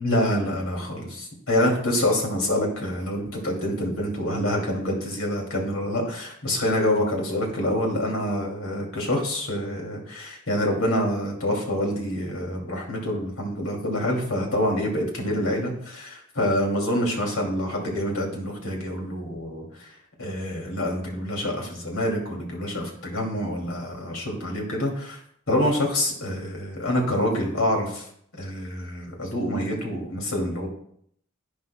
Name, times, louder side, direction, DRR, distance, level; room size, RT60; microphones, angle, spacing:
voice 1, 0.0-25.2 25.5-28.1 28.4-30.7, left 1 dB, 75° left, 0 dB, 2.5 m, -26 dB
11.0 x 9.6 x 2.2 m, 0.67 s
head